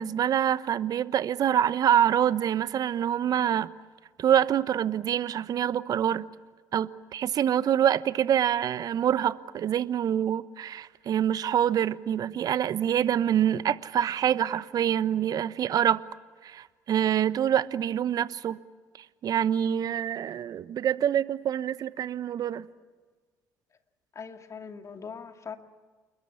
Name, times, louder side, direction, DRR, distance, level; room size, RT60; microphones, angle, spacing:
voice 1, 0.0-3.7 4.2-6.3 6.7-16.0 16.4-18.6 19.2-22.7, right 10 dB, 50° right, 17 dB, 1.1 m, -26 dB
voice 2, 24.1-25.6, left 6 dB, 40° left, 6 dB, 2.5 m, -41 dB
29.0 x 21.5 x 8.5 m, 1.4 s
hypercardioid pair, 55°, 8 cm